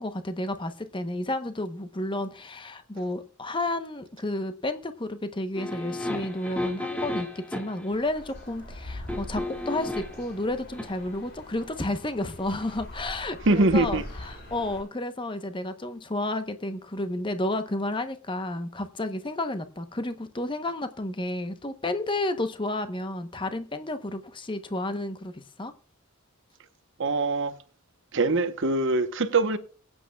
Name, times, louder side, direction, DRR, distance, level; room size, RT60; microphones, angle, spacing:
voice 1, 0.0-25.7, left 1 dB, 20° left, 0.8 m, -31 dB
sound 1, 5.6-7.9 9.1-10.2 10.7-10.9, left 2 dB, 5° left, 1.7 m, -33 dB
sound 2, 7.9-14.8, left 1 dB, 50° left, 5.2 m, -42 dB
voice 2, 13.5-14.0 27.0-27.5 28.1-29.6, right 2 dB, 60° right, 0.9 m, -23 dB
22.0 x 8.8 x 2.3 m
head